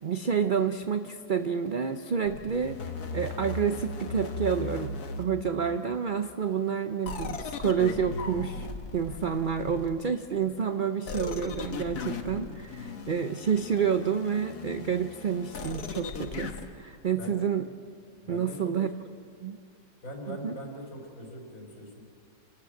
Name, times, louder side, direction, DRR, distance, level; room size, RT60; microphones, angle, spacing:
voice 1, 0.0-4.9 5.2-17.7 18.3-18.9 19.4-19.6 20.3-20.5, right 7 dB, 65° right, 8 dB, 0.5 m, -29 dB
sound 1, 2.2-6.0 7.1-10.1 11.1-16.7, left 4 dB, 70° left, 1.8 m, -38 dB
voice 2, 18.2-18.7 20.0-22.0, equal, 55° left, 1 dB, 4.4 m, -41 dB
28.0 x 13.0 x 7.7 m, 2.3 s
omnidirectional pair, 1.7 m